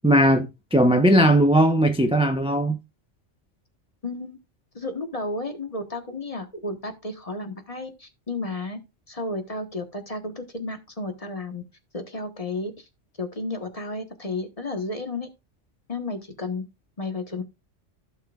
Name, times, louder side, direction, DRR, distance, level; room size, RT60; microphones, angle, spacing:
voice 1, 0.0-2.8, right 1 dB, 5° right, 0.7 m, -18 dB
voice 2, 4.0-4.4 4.7-8.8 9.1-11.6 11.9-12.8 13.2-15.3 15.9-16.6 17.0-17.4, left 2 dB, 30° left, 1.3 m, -32 dB
15.0 x 6.1 x 2.4 m
omnidirectional pair, 1.2 m